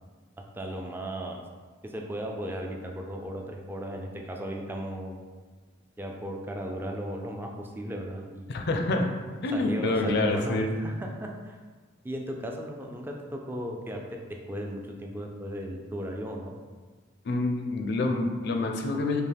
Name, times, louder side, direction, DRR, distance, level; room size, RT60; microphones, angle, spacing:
voice 1, 0.4-1.4 1.8-5.2 6.0-8.5 9.5-11.6 12.0-16.5, equal, 10° right, 1 dB, 0.3 m, -36 dB
voice 2, 8.5-9.2 9.4-10.7 17.2-19.2, left 2 dB, 55° left, 3 dB, 0.4 m, -27 dB
5.3 x 2.0 x 3.3 m, 1.4 s
head